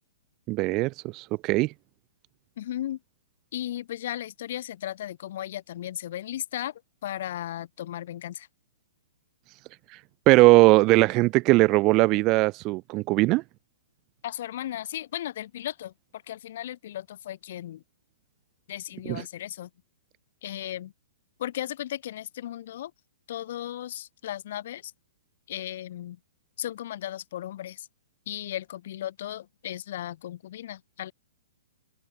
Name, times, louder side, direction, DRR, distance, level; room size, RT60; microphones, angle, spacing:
voice 1, 0.5-1.7 10.3-13.4 19.1-19.2, right 22 dB, 35° right, 0.3 m, -20 dB
voice 2, 2.6-3.0 3.5-8.5 14.2-17.8 18.7-19.7 20.4-20.9 21.4-22.9 23.3-24.9 25.5-26.2 26.6-27.9 28.3-31.1, left 12 dB, 55° left, 3.3 m, -36 dB
open air
figure-of-eight pair, 120°, 0 cm